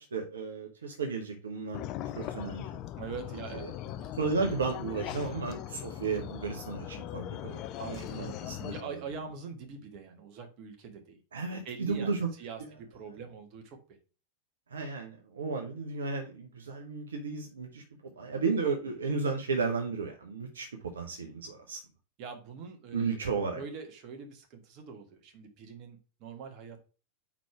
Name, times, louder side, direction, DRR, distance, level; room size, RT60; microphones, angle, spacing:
voice 1, 0.0-1.8 2.1-2.8 3.6-3.7 4.2-7.6 8.1-8.9 11.3-12.3 12.6-12.7 14.7-17.8 18.2-20.7 20.9-21.8 22.9-23.6, right 4 dB, 70° right, 3 dB, 0.9 m, -33 dB
sound 1, 1.7-8.8, left 12 dB, 40° left, 0.4 m, -40 dB
voice 2, 3.0-4.1 7.8-8.5 8.7-11.2 11.7-14.0 22.2-23.3 23.6-26.8, right 5 dB, 40° right, 3 dB, 1.7 m, -44 dB
4.8 x 4.0 x 5.9 m, 0.34 s
figure-of-eight pair, 90°, 0 cm